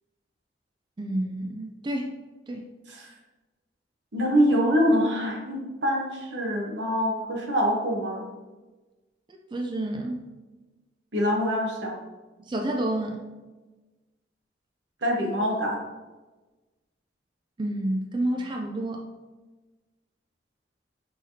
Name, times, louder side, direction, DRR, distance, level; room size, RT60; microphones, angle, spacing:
voice 1, 1.0-2.1 2.5-2.7 9.5-10.2 12.5-13.2 17.6-19.1, right 1 dB, 25° right, 2 dB, 0.3 m, -29 dB
voice 2, 4.1-8.3 11.1-12.0 15.0-15.8, equal, 85° right, 0 dB, 1.0 m, -25 dB
5.6 x 3.3 x 2.7 m, 1.2 s
head